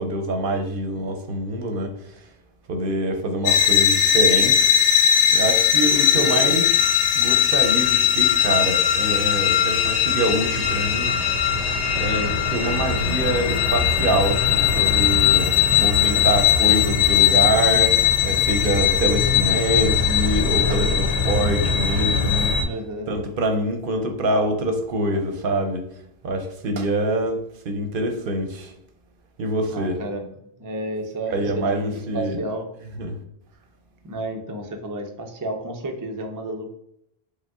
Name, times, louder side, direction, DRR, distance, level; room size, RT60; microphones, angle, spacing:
voice 1, 0.0-1.9 2.7-4.9 5.3-11.6 11.9-22.6 23.1-25.8 26.2-27.4 27.6-28.7 29.4-30.0 31.3-32.4 33.0-33.2, right 1 dB, 60° right, 5 dB, 0.8 m, -25 dB
sound 1, 3.5-22.6, left 8 dB, 80° left, 0.9 m, -19 dB
voice 2, 6.1-6.5 22.6-23.1 24.0-24.1 29.7-30.3 30.6-32.7 34.0-36.7, right 1 dB, 35° right, 3 dB, 0.3 m, -31 dB
5.0 x 2.1 x 3.5 m, 0.75 s
omnidirectional pair, 1.1 m